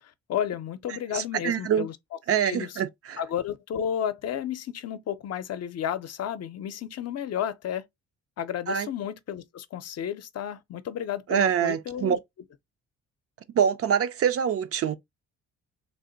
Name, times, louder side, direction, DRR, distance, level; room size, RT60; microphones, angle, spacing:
voice 1, 0.0-2.0 2.4-2.7 3.2-7.9 8.4-12.2, left 9 dB, 55° left, 0.6 m, -32 dB
voice 2, 1.1-1.9 2.3-3.2 8.7-8.9 11.3-12.2 13.5-15.0, right 8 dB, 50° right, 0.5 m, -25 dB
3.4 x 2.1 x 3.8 m
cardioid pair, 90°, 30 cm